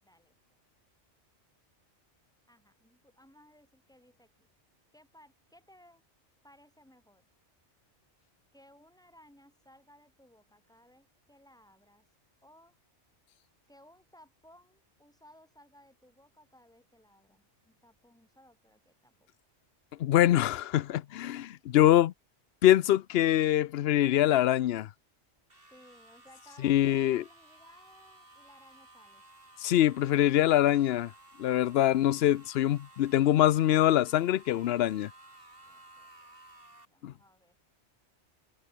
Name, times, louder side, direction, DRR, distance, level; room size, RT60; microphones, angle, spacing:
voice 1, 0.0-0.3 2.5-4.5 4.9-6.0 6.4-7.3 8.5-12.1 12.4-12.8 13.7-19.3 25.7-29.2 35.7-37.5, equal, 5° left, 6.6 m, -60 dB
voice 2, 20.0-22.1 22.6-24.9 26.6-27.2 29.6-31.1 31.4-35.1 37.0-37.1, left 12 dB, 65° left, 0.8 m, -24 dB
sound 1, 25.5-36.8, right 2 dB, 50° right, 5.2 m, -56 dB
omnidirectional pair, 1.2 m